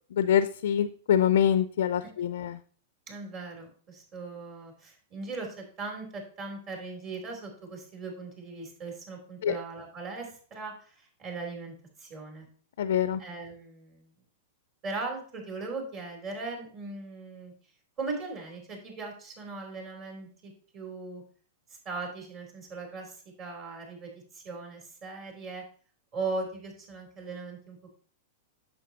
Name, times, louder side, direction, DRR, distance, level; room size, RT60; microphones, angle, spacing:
voice 1, 0.2-2.6 9.4-9.5 12.8-13.2, left 9 dB, 75° left, 12 dB, 0.4 m, -25 dB
voice 2, 3.1-12.5 13.2-14.1 14.8-17.5 18.0-21.2 21.8-25.6 26.1-27.8, right 3 dB, 40° right, 1 dB, 3.4 m, -39 dB
8.6 x 7.0 x 2.9 m, 0.44 s
hypercardioid pair, 130°, 0 cm